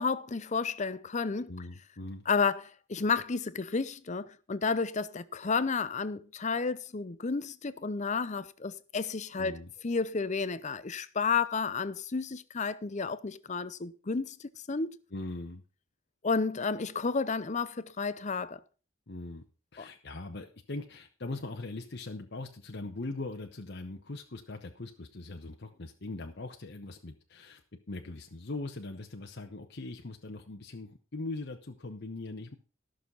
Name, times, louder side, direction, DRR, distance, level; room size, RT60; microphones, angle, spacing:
voice 1, 0.0-1.5 2.3-2.6 2.9-9.6 9.8-15.0 16.2-18.6 19.8-19.9, left 4 dB, 35° left, 0.6 m, -31 dB
voice 2, 1.4-2.2 9.4-9.7 15.1-15.6 19.1-19.4 19.7-27.6 27.9-32.6, left 2 dB, 55° left, 0.9 m, -41 dB
14.0 x 6.5 x 5.4 m
head